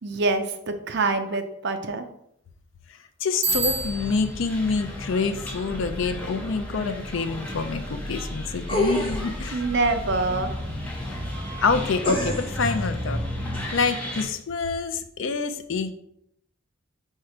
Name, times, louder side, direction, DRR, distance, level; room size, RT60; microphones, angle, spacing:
voice 1, 0.0-2.0 9.5-10.5, right 3 dB, 60° right, 7 dB, 0.6 m, -25 dB
voice 2, 3.2-9.6 11.6-13.2 13.7-15.9, left 4 dB, 70° left, 9 dB, 0.5 m, -26 dB
Bicycle bell, 3.4-4.4, right 3 dB, 35° right, 1.5 m, -27 dB
sound 1, 3.5-14.2, left 1 dB, 10° left, 1.2 m, -33 dB
sound 2, 8.7-9.4 12.0-12.6 13.5-13.6, left 1 dB, 25° left, 1.1 m, -26 dB
4.5 x 4.3 x 4.9 m, 0.76 s
head